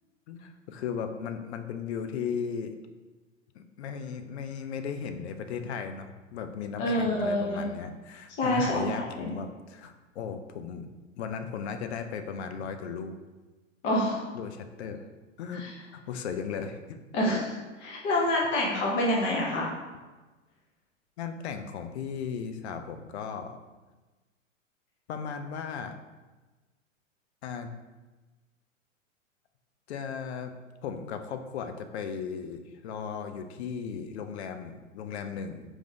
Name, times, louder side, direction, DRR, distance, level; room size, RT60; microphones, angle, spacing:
voice 1, 0.3-2.8 3.5-10.9 11.2-13.2 14.3-15.1 15.4-15.6 15.9-17.0 21.2-23.6 25.1-25.9 27.4-27.7 29.9-30.5 30.8-35.6, left 6 dB, 55° left, 7 dB, 0.5 m, -36 dB
voice 2, 6.8-7.6 8.4-9.3 13.8-14.2 15.6-15.7 17.1-19.7, left 1 dB, 30° left, -3 dB, 0.8 m, -27 dB
4.8 x 2.6 x 3.7 m, 1.2 s
figure-of-eight pair, 100°, 39 cm